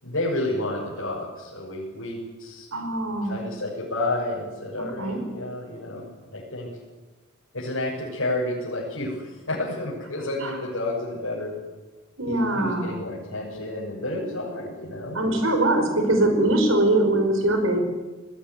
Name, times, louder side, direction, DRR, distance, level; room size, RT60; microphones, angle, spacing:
voice 1, 0.0-2.7 3.2-6.1 6.3-6.7 7.5-11.5 12.3-15.4, left 1 dB, 80° left, -6 dB, 6.9 m, -30 dB
voice 2, 2.7-3.3 5.0-5.2 10.4-10.6 12.2-12.9 15.1-17.8, right 1 dB, 80° right, 5 dB, 5.3 m, -22 dB
21.0 x 17.5 x 9.7 m, 1.2 s
head